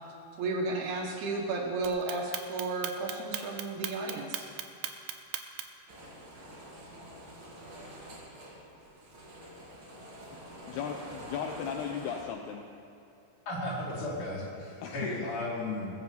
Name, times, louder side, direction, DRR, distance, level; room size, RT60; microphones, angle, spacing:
voice 1, 0.4-4.5, right 3 dB, 70° right, 1 dB, 3.0 m, -33 dB
Clock, 1.8-5.9, right 11 dB, 85° right, 3.1 m, -37 dB
sound 1, 5.9-12.3, equal, 40° right, 2.3 m, -47 dB
voice 2, 10.7-12.6 14.8-15.1, left 7 dB, 75° left, 3 dB, 2.5 m, -36 dB
voice 3, 13.5-15.9, left 2 dB, 45° left, -8 dB, 5.6 m, -35 dB
20.5 x 8.4 x 7.4 m, 2.8 s
omnidirectional pair, 5.2 m